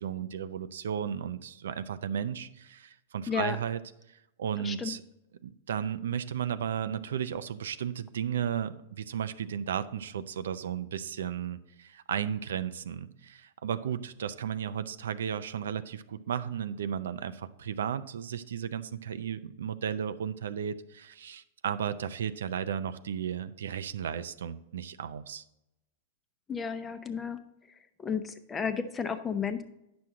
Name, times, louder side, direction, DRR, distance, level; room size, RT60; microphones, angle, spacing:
voice 1, 0.0-3.8 4.4-5.0 5.4-25.4, right 8 dB, 85° right, 12 dB, 0.5 m, -34 dB
voice 2, 3.3-3.6 4.6-4.9 26.5-27.4 28.0-29.6, left 6 dB, 15° left, 10 dB, 0.7 m, -32 dB
9.5 x 6.1 x 3.7 m, 0.86 s
supercardioid pair, 140°, 0 cm